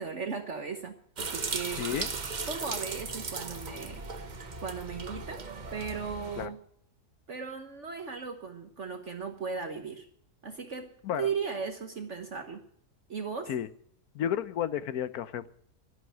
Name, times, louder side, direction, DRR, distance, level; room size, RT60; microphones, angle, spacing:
voice 1, 0.0-1.9 2.5-4.0 4.6-5.4 5.7-6.6 7.3-10.1 10.4-12.6 13.1-13.5, right 5 dB, 50° right, 6 dB, 1.3 m, -37 dB
sound 1, 1.2-6.5, right 4 dB, 35° right, 0.9 m, -37 dB
voice 2, 1.7-2.1 6.4-6.5 11.0-11.3 13.5-13.7 14.1-15.5, left 9 dB, 70° left, 14 dB, 1.3 m, -32 dB
11.5 x 10.5 x 9.0 m, 0.67 s
omnidirectional pair, 1.7 m